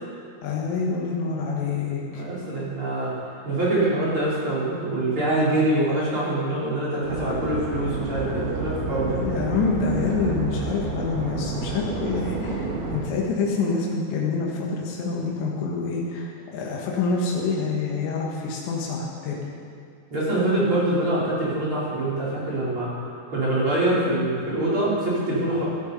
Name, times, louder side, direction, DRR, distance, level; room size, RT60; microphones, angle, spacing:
voice 1, 0.4-2.2 9.0-19.4, left 4 dB, 80° left, -3 dB, 4.0 m, -27 dB
voice 2, 2.0-3.1 3.4-9.2 20.1-22.9 23.3-25.6, right 1 dB, 30° right, -8 dB, 4.8 m, -24 dB
sound 1, 7.0-13.0, right 3 dB, 85° right, 4.5 m, -30 dB
17.5 x 13.0 x 5.5 m, 2.5 s
omnidirectional pair, 5.1 m